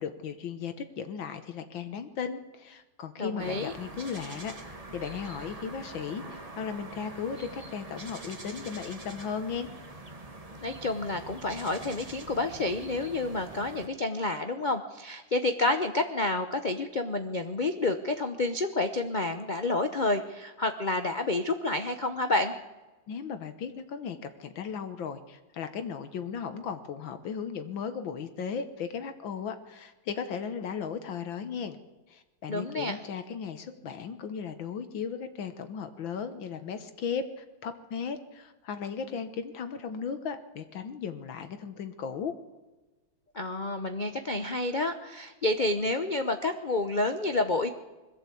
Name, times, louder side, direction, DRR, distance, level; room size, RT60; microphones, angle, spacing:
voice 1, 0.0-9.7 23.1-31.8 32.1-42.3, left 6 dB, 70° left, 9 dB, 1.8 m, -36 dB
voice 2, 3.2-3.7 10.6-22.5 32.5-33.0 43.3-47.7, left 2 dB, 50° left, 8 dB, 0.5 m, -29 dB
sound 1, 3.4-13.9, right 2 dB, 20° right, 1.4 m, -44 dB
21.0 x 14.5 x 8.4 m, 1.2 s
omnidirectional pair, 2.3 m